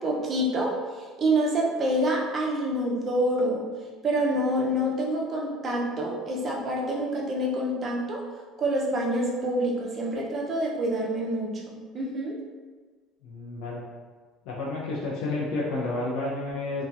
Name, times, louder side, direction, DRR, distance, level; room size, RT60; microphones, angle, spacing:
voice 1, 0.0-3.6 4.0-8.2 8.6-12.4, right 1 dB, 25° right, -2 dB, 0.4 m, -27 dB
voice 2, 13.2-13.8 14.5-16.8, left 2 dB, 75° left, -4 dB, 0.4 m, -30 dB
2.7 x 2.2 x 2.3 m, 1.4 s
cardioid pair, 160°, 0 cm